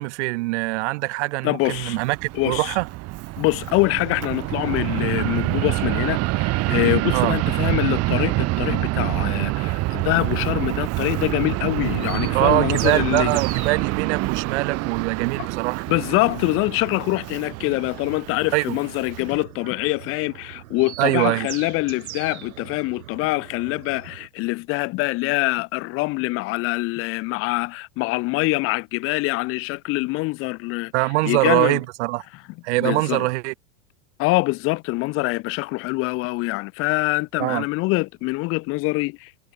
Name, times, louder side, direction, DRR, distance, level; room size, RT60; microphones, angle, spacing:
voice 1, 0.0-2.9 7.1-7.3 12.3-15.8 18.5-18.8 21.0-21.5 30.9-32.2 32.6-33.5 37.4-37.7, right 22 dB, 55° right, 1.2 m, -23 dB
voice 2, 1.4-2.0 2.3-2.8 3.4-13.4 15.9-30.9 31.2-31.8 32.8-33.3 34.2-39.3, left 23 dB, 30° left, 0.8 m, -24 dB
Fixed-wing aircraft airplane, 1.6-19.4, right 20 dB, 35° right, 2.1 m, -26 dB
sound 1, 11.7-24.3, right 13 dB, 80° right, 5.6 m, -40 dB
supercardioid pair, 145°, 42 cm